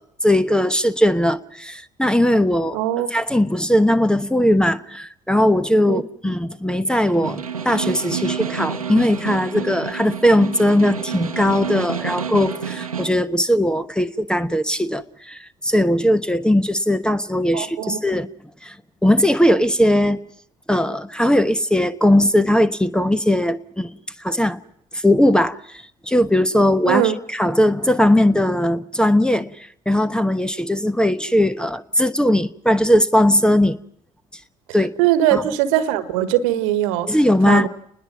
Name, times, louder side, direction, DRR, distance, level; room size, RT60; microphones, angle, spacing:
voice 1, 0.0-2.8 3.1-18.3 18.6-18.8 19.0-20.2 20.7-24.6 24.9-33.8 34.7-34.9 35.3-35.4 37.1-37.7, left 1 dB, 5° left, 1.0 m, -19 dB
voice 2, 2.7-3.1 5.8-6.3 17.5-18.0 26.9-27.1 35.0-37.1 37.4-37.7, right 12 dB, 70° right, 1.4 m, -20 dB
Snare drum, 7.1-13.2, right 6 dB, 90° right, 1.0 m, -29 dB
29.5 x 20.5 x 6.1 m
figure-of-eight pair, 50°, 18 cm